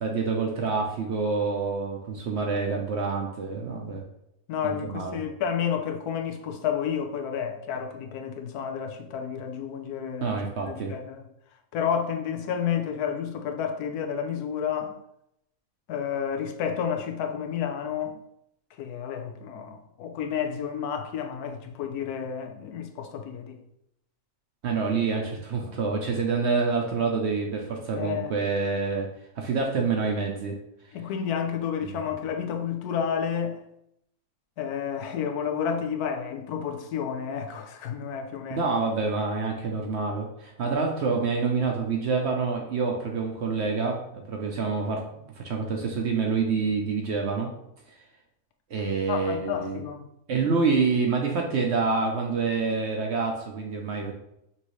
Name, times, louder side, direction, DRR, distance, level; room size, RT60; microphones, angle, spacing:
voice 1, 0.0-4.0 4.6-5.2 10.2-10.9 24.6-29.1 29.4-30.6 31.8-31.9 38.5-47.5 48.7-49.8 50.3-54.1, right 4 dB, 60° right, 0.7 m, -27 dB
voice 2, 4.5-10.4 10.7-11.2 11.7-15.0 15.9-18.2 18.8-23.6 25.6-25.7 28.0-28.4 30.9-33.6 34.6-38.7 49.1-50.0, left 7 dB, 85° left, 1.1 m, -30 dB
5.7 x 2.7 x 3.0 m
omnidirectional pair, 1.6 m